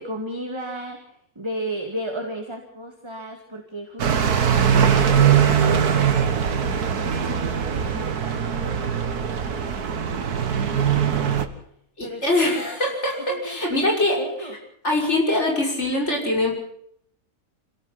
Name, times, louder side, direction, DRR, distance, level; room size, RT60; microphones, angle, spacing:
voice 1, 0.0-11.6 12.0-12.2 12.5-12.6 13.3-14.6, right 1 dB, 15° right, 3 dB, 2.3 m, -36 dB
sound 1, 4.0-11.5, right 8 dB, 75° right, 2.0 m, -21 dB
voice 2, 12.0-14.2 14.8-16.5, left 2 dB, 45° left, 0 dB, 6.5 m, -23 dB
26.0 x 17.5 x 5.8 m, 0.69 s
omnidirectional pair, 1.6 m